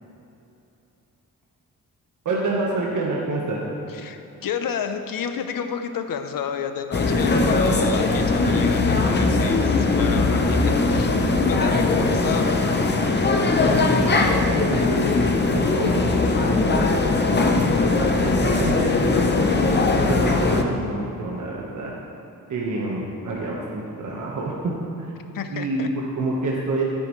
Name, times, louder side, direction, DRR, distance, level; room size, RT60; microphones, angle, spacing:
voice 1, 2.2-3.6 13.8-14.9 15.5-17.0 17.3-19.3 19.9-21.9 22.5-24.7 25.0-25.1 25.5-26.8, right 2 dB, 60° right, -3 dB, 1.4 m, -28 dB
voice 2, 3.9-11.1 11.5-12.5 25.3-25.9, left 7 dB, 75° left, 7 dB, 0.8 m, -31 dB
sound 1, 6.9-20.6, left 3 dB, 30° left, 0.7 m, -20 dB
13.5 x 9.7 x 3.2 m, 2.9 s
wide cardioid pair, 140°, 34 cm